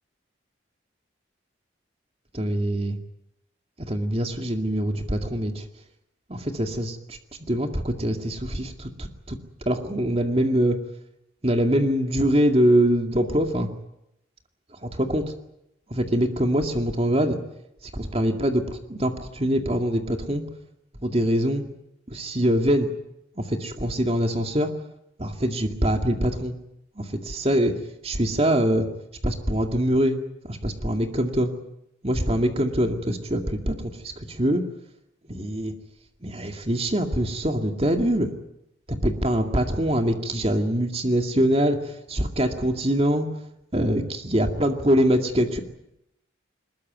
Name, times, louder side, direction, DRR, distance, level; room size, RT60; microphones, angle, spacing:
voice 1, 2.3-2.9 3.8-5.7 6.3-9.4 9.7-10.8 11.4-13.7 14.8-15.2 15.9-17.4 17.9-20.4 21.0-21.7 22.1-22.9 23.4-24.7 25.2-26.5 27.0-27.7 28.0-28.9 29.2-30.2 30.4-31.5 32.0-34.6 35.3-35.7 36.2-38.3 38.9-43.3 43.7-45.6, equal, 30° right, 5 dB, 2.2 m, -24 dB
22.0 x 20.5 x 9.4 m, 0.82 s
head